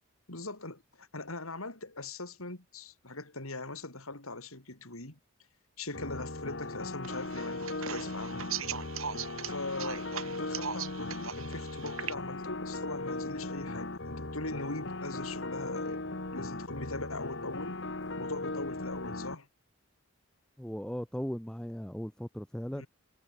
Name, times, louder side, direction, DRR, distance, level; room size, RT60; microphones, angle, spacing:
voice 1, 0.3-5.2 5.8-8.5 9.5-16.0 16.3-17.8 18.2-19.5 22.7-22.9, left 2 dB, 80° left, 5.5 m, -41 dB
sound 1, 5.9-19.3, left 2 dB, 55° left, 1.7 m, -38 dB
sound 2, 7.0-12.1, right 8 dB, 75° right, 3.0 m, -40 dB
voice 2, 20.6-22.8, equal, 5° left, 1.1 m, -37 dB
head